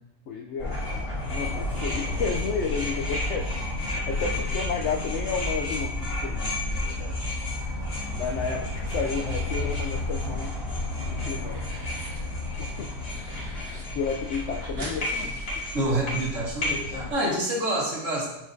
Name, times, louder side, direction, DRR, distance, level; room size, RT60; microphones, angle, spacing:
voice 1, 0.3-3.5 3.8-7.3 8.1-10.5 11.0-11.6 12.6-12.9 13.9-15.5, left 5 dB, 70° left, 2 dB, 0.6 m, -32 dB
sound 1, 0.6-17.1, left 2 dB, 40° left, 1.6 m, -31 dB
sound 2, 10.0-10.7 11.0-12.3 12.6-13.8 14.1-14.2 14.4-16.3, right 1 dB, 70° right, 2.0 m, -43 dB
voice 2, 15.7-18.3, right 1 dB, 55° right, -3 dB, 1.8 m, -27 dB
7.4 x 5.0 x 2.6 m, 0.86 s
omnidirectional pair, 1.7 m